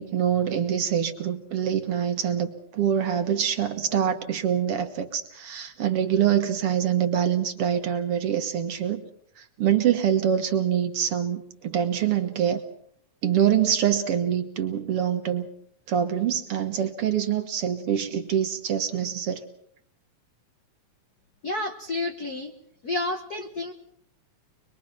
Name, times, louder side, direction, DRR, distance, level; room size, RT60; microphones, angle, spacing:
voice 1, 0.0-9.0 9.4-12.6 13.2-15.5 15.9-19.4, right 9 dB, 55° right, 7 dB, 2.1 m, -25 dB
voice 2, 21.4-22.5 22.8-23.7, left 2 dB, 50° left, 5 dB, 1.2 m, -30 dB
24.5 x 22.0 x 6.0 m, 0.66 s
omnidirectional pair, 3.3 m